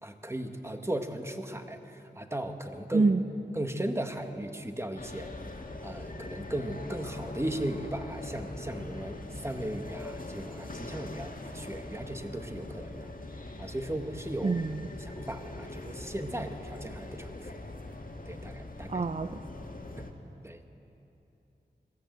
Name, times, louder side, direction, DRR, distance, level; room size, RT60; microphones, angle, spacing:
voice 1, 0.0-3.1 3.5-13.1 13.6-14.6 15.0-17.6 18.2-19.0 20.0-20.1 20.4-20.6, right 1 dB, 15° right, 6 dB, 1.5 m, -37 dB
sound 1, 5.0-20.1, left 2 dB, 50° left, 1.9 m, -42 dB
voice 2, 14.4-14.8 18.9-19.3, right 3 dB, 40° right, 9 dB, 0.6 m, -25 dB
21.5 x 15.5 x 7.9 m, 2.9 s
wide cardioid pair, 60°, 18 cm